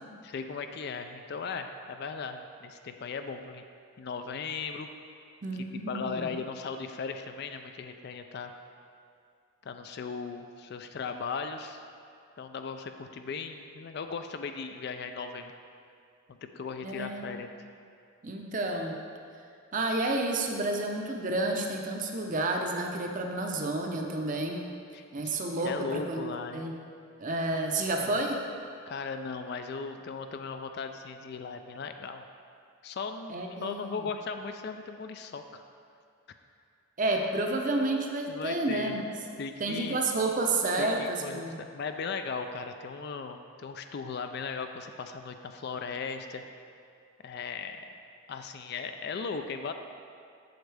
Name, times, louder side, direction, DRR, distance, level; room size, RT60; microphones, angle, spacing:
voice 1, 0.2-3.6 4.0-4.9 5.7-8.6 9.6-11.8 12.4-15.5 16.4-17.5 24.9-26.7 27.9-28.2 28.9-32.3 32.8-35.6 38.3-38.9 39.4-40.0 40.8-46.4 47.2-47.8 48.3-49.7, left 5 dB, 50° left, 7 dB, 0.3 m, -37 dB
voice 2, 5.4-6.3 16.8-17.3 18.2-18.9 19.7-24.6 25.1-26.2 26.5-26.7 27.2-28.4 33.3-34.0 37.0-39.1 39.6-41.6, right 2 dB, 35° right, 2 dB, 0.6 m, -30 dB
7.9 x 7.1 x 3.4 m, 2.4 s
head